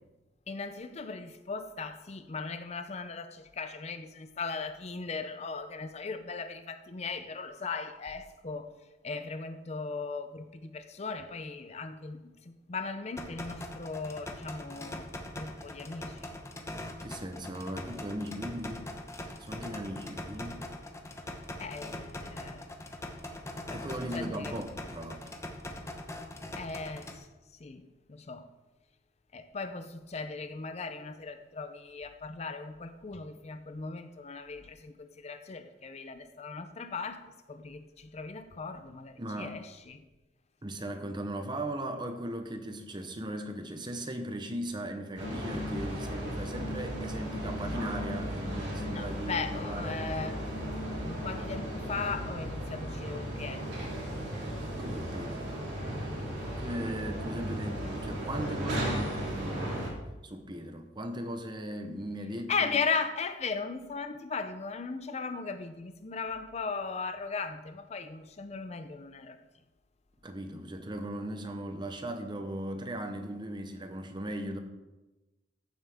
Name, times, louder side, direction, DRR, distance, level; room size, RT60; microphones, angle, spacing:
voice 1, 0.5-8.7 9.0-16.3 21.6-22.6 23.7-23.9 24.1-24.6 26.6-27.3 27.6-28.5 29.3-37.2 37.5-40.0 48.9-50.4 51.0-53.8 62.5-69.4, left 4 dB, 35° left, 0.6 m, -37 dB
sound 1, 13.2-27.2, left 1 dB, 15° left, 0.9 m, -42 dB
voice 2, 17.0-18.9 19.4-20.7 23.7-25.2 39.2-39.6 40.6-50.3 54.8-55.6 56.6-62.8 70.2-74.6, right 1 dB, 25° right, 0.9 m, -38 dB
sound 2, 45.2-59.9, equal, 85° right, 3.3 m, -36 dB
14.0 x 7.5 x 3.5 m
head